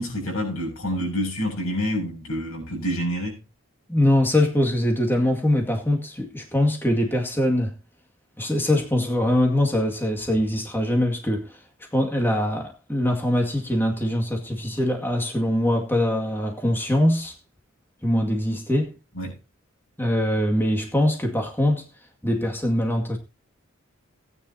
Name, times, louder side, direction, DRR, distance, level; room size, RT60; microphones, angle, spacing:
voice 1, 0.0-3.4 19.2-19.4, equal, 85° left, 6.5 m, -27 dB
voice 2, 3.9-7.7 8.4-11.6 11.9-17.3 18.0-18.9 20.0-21.9 22.2-23.2, left 1 dB, 10° left, 2.2 m, -23 dB
17.5 x 9.7 x 2.8 m
head